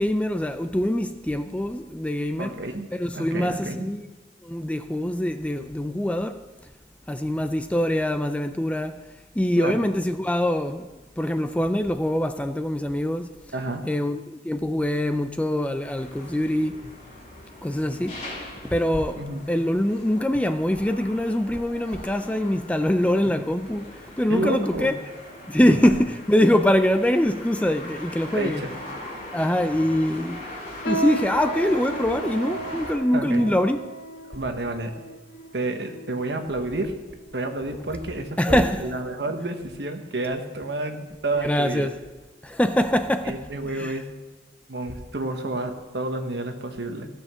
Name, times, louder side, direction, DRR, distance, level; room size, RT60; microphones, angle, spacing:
voice 1, 0.0-2.6 2.9-4.1 4.4-6.4 7.1-9.0 9.4-10.9 11.2-13.3 13.9-16.9 17.6-18.2 18.6-24.9 25.5-28.6 29.3-30.4 30.9-33.8 38.4-38.9 41.4-42.0 42.4-43.5 43.7-44.0, left 1 dB, 5° left, 0.3 m, -24 dB
voice 2, 2.4-2.9 3.1-3.8 9.6-9.7 13.5-13.9 19.2-19.4 23.2-23.4 24.3-24.9 25.7-26.0 28.3-28.7 33.1-33.5 34.3-34.9 35.5-36.9 37.3-41.9 43.2-44.1 44.7-47.1, right 2 dB, 65° right, 1.2 m, -30 dB
sound 1, 15.8-32.9, left 1 dB, 35° left, 2.8 m, -41 dB
sound 2, 30.9-36.5 37.2-37.3 38.1-38.4 38.8-38.9 39.6-39.7, right 2 dB, 65° left, 1.3 m, -34 dB
16.0 x 6.5 x 6.1 m
head